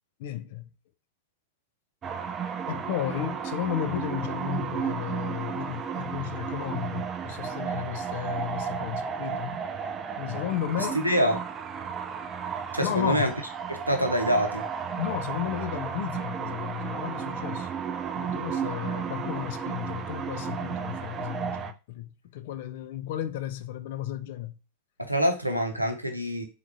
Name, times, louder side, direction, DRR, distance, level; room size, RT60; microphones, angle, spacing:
voice 1, 0.2-0.7 2.7-9.6 10.2-11.0 12.8-13.3 15.0-17.7 18.2-24.6, left 11 dB, 50° left, 0.3 m, -33 dB
sound 1, 2.0-21.7, right 7 dB, 25° right, 0.3 m, -33 dB
voice 2, 10.9-11.4 12.7-13.3 13.7-14.7 25.0-26.4, equal, 90° right, 0.7 m, -25 dB
3.6 x 3.6 x 2.6 m
figure-of-eight pair, 90°, 0 cm